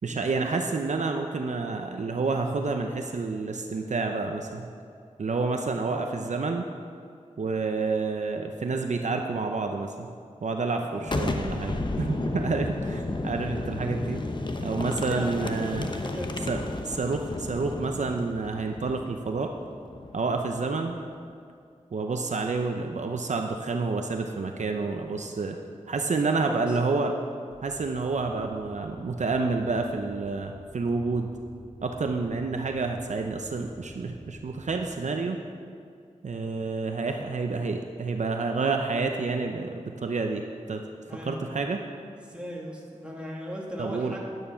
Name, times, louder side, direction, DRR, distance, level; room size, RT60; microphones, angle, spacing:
voice 1, 0.0-4.6 5.2-6.7 7.4-10.1 10.4-14.2 14.6-15.9 16.5-16.6 16.8-19.5 20.1-21.0 21.9-25.6 25.9-27.1 27.6-31.3 31.8-35.4 36.2-40.8 41.3-41.8 43.8-44.2, right 4 dB, 65° right, 4 dB, 0.7 m, -29 dB
Boom, 11.0-20.6, left 2 dB, 35° left, 0.9 m, -33 dB
voice 2, 15.0-16.5 26.1-26.8 41.1-41.5 42.3-44.2, equal, 10° right, -4 dB, 2.4 m, -38 dB
sound 1, 27.5-34.8, equal, 40° right, 2.4 m, -49 dB
10.5 x 9.4 x 5.7 m, 2.3 s
wide cardioid pair, 85°, 13 cm